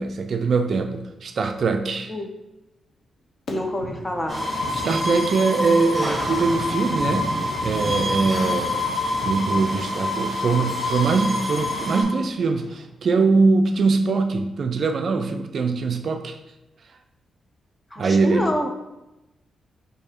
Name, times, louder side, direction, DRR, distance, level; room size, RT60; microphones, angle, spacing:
voice 1, 0.0-2.1 4.7-7.3 7.6-8.8 9.2-16.4 18.0-18.5, right 4 dB, 50° right, 7 dB, 0.3 m, -22 dB
sound 1, 3.5-12.8, left 2 dB, 60° left, 0.8 m, -36 dB
voice 2, 3.5-4.4 17.9-18.7, left 1 dB, 15° left, 4 dB, 0.5 m, -27 dB
sound 2, 4.3-12.0, left 1 dB, 15° right, 1.7 m, -26 dB
4.6 x 2.7 x 4.3 m, 0.96 s
cardioid pair, 120°, 0 cm